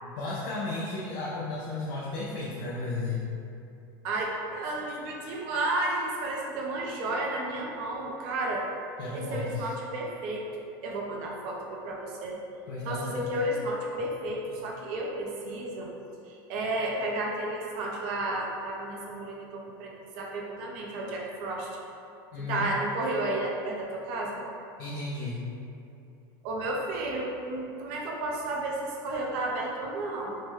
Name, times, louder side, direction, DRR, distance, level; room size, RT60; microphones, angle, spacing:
voice 1, 0.0-3.2 9.0-9.7 12.7-13.3 22.3-22.7 24.8-25.4, left 3 dB, 70° left, -7 dB, 0.5 m, -34 dB
voice 2, 4.0-8.6 9.1-10.5 10.8-12.4 12.8-15.9 16.3-21.7 22.5-24.4 26.4-30.4, right 2 dB, 60° right, -2 dB, 0.6 m, -32 dB
3.1 x 2.1 x 3.1 m, 2.7 s
supercardioid pair, 140°, 11 cm